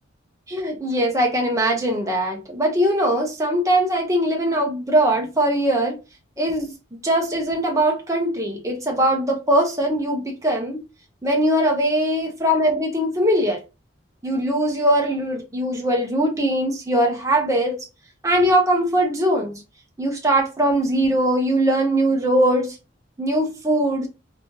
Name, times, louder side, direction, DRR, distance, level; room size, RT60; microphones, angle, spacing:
voice 1, 0.5-5.9 6.4-10.8 11.2-13.6 14.2-17.9 18.2-19.6 20.0-22.8 23.2-24.1, right 1 dB, 15° right, 0.7 m, -21 dB
3.0 x 2.7 x 2.9 m
head